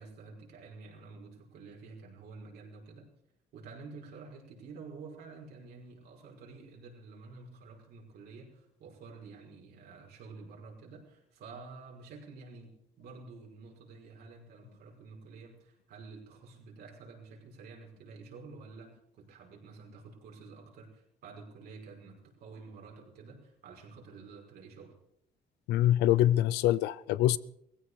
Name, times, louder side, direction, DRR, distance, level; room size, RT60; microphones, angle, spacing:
voice 1, 0.0-3.1 3.5-24.9, right 4 dB, 70° right, 5.6 m, -50 dB
voice 2, 25.7-27.4, left 13 dB, 85° left, 0.6 m, -25 dB
18.5 x 16.0 x 4.9 m
cardioid pair, 110°, 17 cm